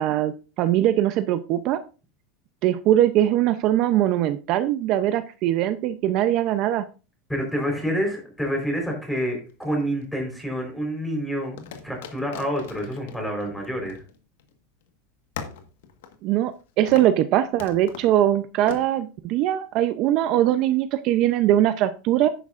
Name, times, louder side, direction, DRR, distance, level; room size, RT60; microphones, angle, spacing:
voice 1, 0.0-1.8 2.6-6.9 16.2-16.5 16.8-22.3, right 12 dB, 50° right, 10 dB, 0.6 m, -21 dB
voice 2, 7.3-14.0, equal, 5° left, 1 dB, 4.2 m, -28 dB
sound 1, 9.5-10.4 11.6-14.5 14.8-14.9 15.4-16.6 16.9-17.2 17.6-18.1 18.7-18.9, left 7 dB, 90° left, 1.5 m, -40 dB
10.5 x 9.1 x 2.5 m, 0.32 s
supercardioid pair, 145°, 0 cm